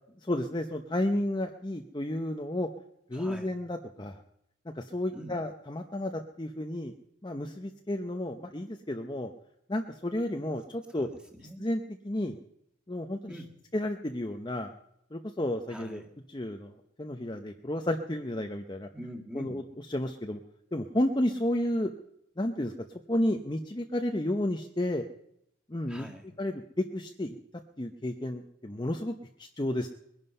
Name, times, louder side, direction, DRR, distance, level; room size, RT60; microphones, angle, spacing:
voice 1, 0.2-2.7 3.1-4.2 4.7-6.9 7.2-9.3 9.7-11.1 11.6-12.4 12.9-13.3 13.7-14.7 15.1-16.0 16.3-18.9 19.3-19.6 19.9-20.4 20.7-21.9 22.4-22.7 23.1-25.0 25.7-26.1 26.4-26.6 26.9-27.4 27.8-29.9, left 1 dB, 20° left, 4 dB, 0.7 m, -32 dB
voice 2, 3.1-3.6 5.1-5.4 10.9-11.7 13.3-13.5 15.7-16.1 18.9-19.6 25.9-26.4, equal, 5° right, 2 dB, 2.0 m, -44 dB
21.5 x 11.0 x 5.4 m, 0.77 s
head